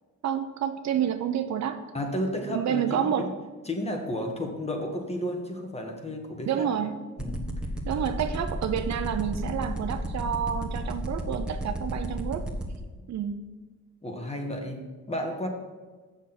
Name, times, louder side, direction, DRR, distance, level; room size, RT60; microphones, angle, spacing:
voice 1, 0.2-1.8 2.5-3.3 6.5-7.0 7.9-12.5 13.1-13.4, right 9 dB, 65° right, 7 dB, 0.7 m, -29 dB
voice 2, 1.9-3.3 3.6-6.7 7.2-7.5 14.0-15.5, left 1 dB, 20° left, 3 dB, 1.6 m, -32 dB
sound 1, 7.2-12.8, right 2 dB, 5° right, 1.3 m, -32 dB
7.3 x 6.6 x 6.0 m, 1.3 s
cardioid pair, 90°, 30 cm